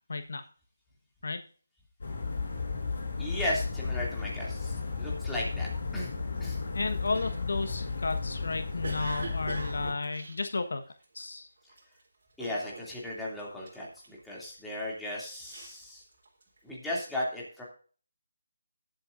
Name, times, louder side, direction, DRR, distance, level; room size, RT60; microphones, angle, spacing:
voice 1, 0.1-0.4 1.2-1.4 6.7-10.8 11.1-11.5, left 3 dB, 70° left, 7 dB, 1.3 m, -33 dB
sound 1, 2.0-9.9, left 4 dB, 55° left, 5.6 m, -34 dB
voice 2, 3.2-6.6 12.4-16.0 16.6-17.6, left 1 dB, 5° left, -6 dB, 2.8 m, -36 dB
Cough, 7.1-11.2 11.7-12.0 12.4-13.1 13.4-14.5 15.1-16.6, right 3 dB, 60° right, 3.7 m, -44 dB
19.0 x 7.9 x 2.6 m, 0.41 s
figure-of-eight pair, 165°, 0 cm